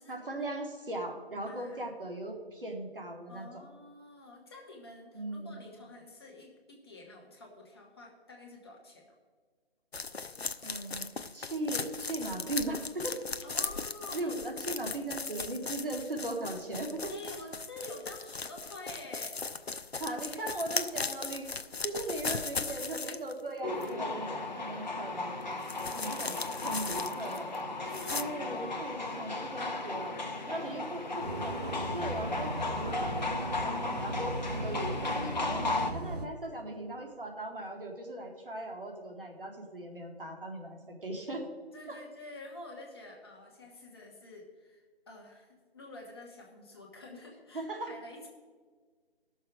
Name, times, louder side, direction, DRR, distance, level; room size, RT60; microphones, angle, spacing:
voice 1, 0.1-3.6 5.1-5.7 10.6-11.1 11.3-13.2 14.1-17.1 20.0-21.5 21.8-25.4 25.9-27.5 28.1-30.1 30.5-41.5 41.9-42.0 47.5-47.9, right 2 dB, 55° right, 2 dB, 2.0 m, -38 dB
voice 2, 1.5-1.8 3.3-9.2 13.4-14.3 17.1-19.4 27.8-28.9 38.2-38.4 41.7-48.3, left 2 dB, 25° left, 0 dB, 1.4 m, -48 dB
sound 1, 9.9-23.4 23.8-23.9 25.6-27.6 27.9-28.2, left 4 dB, 75° left, 0.7 m, -38 dB
sound 2, 23.6-35.9, left 2 dB, 45° left, 1.2 m, -35 dB
sound 3, 31.2-36.3, right 1 dB, 40° right, 0.6 m, -38 dB
15.0 x 6.6 x 5.0 m, 1.5 s
figure-of-eight pair, 155°, 31 cm